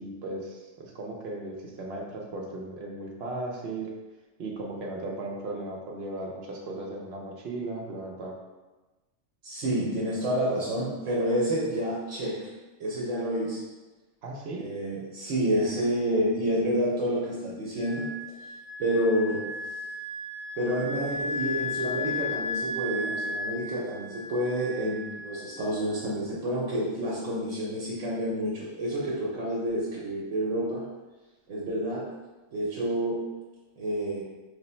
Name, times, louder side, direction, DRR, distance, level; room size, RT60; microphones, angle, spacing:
voice 1, 0.0-3.9 4.4-8.3 14.2-14.7, right 2 dB, 60° right, 0 dB, 0.8 m, -36 dB
voice 2, 9.4-12.5 12.8-13.6 14.6-18.1 18.8-19.5 20.6-30.8 31.5-32.1 32.5-33.2 33.8-34.2, right 1 dB, 85° right, -5 dB, 1.1 m, -29 dB
Wind instrument woodwind instrument, 17.8-26.0, left 2 dB, 65° left, 0.8 m, -35 dB
3.2 x 2.0 x 4.1 m, 1.2 s
omnidirectional pair, 1.3 m